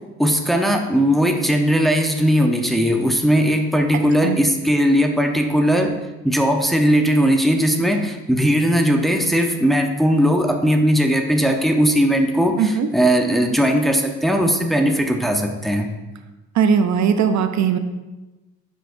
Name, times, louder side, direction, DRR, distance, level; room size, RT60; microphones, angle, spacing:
voice 1, 0.2-5.9 6.2-15.9, equal, ahead, 3 dB, 0.7 m, -18 dB
voice 2, 12.6-12.9 16.6-17.8, right 7 dB, 65° right, 8 dB, 0.6 m, -18 dB
8.1 x 5.7 x 2.6 m, 1.1 s
cardioid pair, 90°, 30 cm